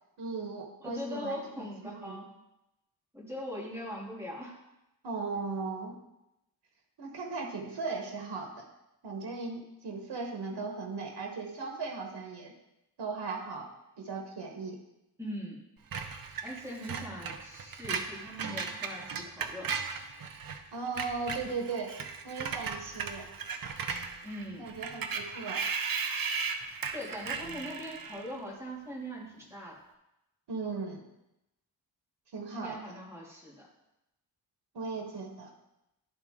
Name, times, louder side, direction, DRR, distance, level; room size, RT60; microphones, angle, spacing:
voice 1, 0.2-2.2 5.0-6.0 7.0-8.7 9.0-12.5 13.0-13.7 14.0-14.8 20.7-21.9 22.2-23.2 24.6-25.6 30.5-31.0 32.3-32.8 34.7-35.5, right 4 dB, 90° right, 2 dB, 1.2 m, -37 dB
voice 2, 0.8-2.3 3.1-4.6 15.2-15.6 16.4-19.7 24.2-24.7 26.9-29.8 32.5-33.7, equal, 5° right, -6 dB, 2.4 m, -41 dB
Screech, 15.9-20.6 20.9-28.3, right 5 dB, 60° right, 0.7 m, -36 dB
11.5 x 3.9 x 3.7 m, 0.89 s
wide cardioid pair, 140°, 40 cm